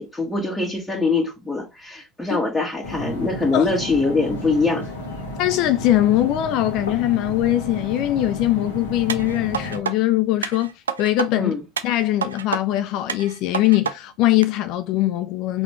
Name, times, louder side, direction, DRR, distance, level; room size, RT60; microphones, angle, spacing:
voice 1, 0.0-4.9 11.4-11.6, left 3 dB, 10° left, 1.7 m, -23 dB
sound 1, 2.8-9.8, left 1 dB, 85° left, 1.4 m, -32 dB
voice 2, 5.4-10.7 11.0-11.5 11.8-15.6, left 14 dB, 60° left, 0.4 m, -21 dB
sound 2, 9.1-9.9 10.4-11.3 11.8-12.6 13.1-13.9 14.4-14.5, right 6 dB, 90° right, 0.4 m, -28 dB
4.1 x 3.0 x 3.0 m
hypercardioid pair, 70°, 0 cm